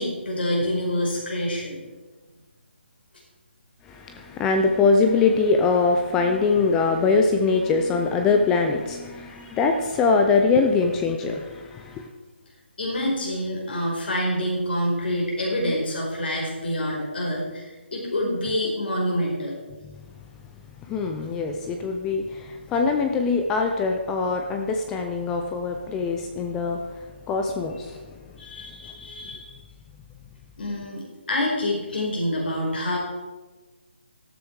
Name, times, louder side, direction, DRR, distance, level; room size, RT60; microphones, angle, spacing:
voice 1, 0.0-1.8 9.3-9.6 12.8-19.6 28.4-29.5 30.6-33.0, left 1 dB, 60° left, -2 dB, 4.9 m, -27 dB
voice 2, 3.9-12.0 20.9-26.8 27.3-28.0, left 4 dB, 5° left, 4 dB, 0.4 m, -22 dB
13.0 x 12.5 x 4.7 m, 1.2 s
hypercardioid pair, 170°, 6 cm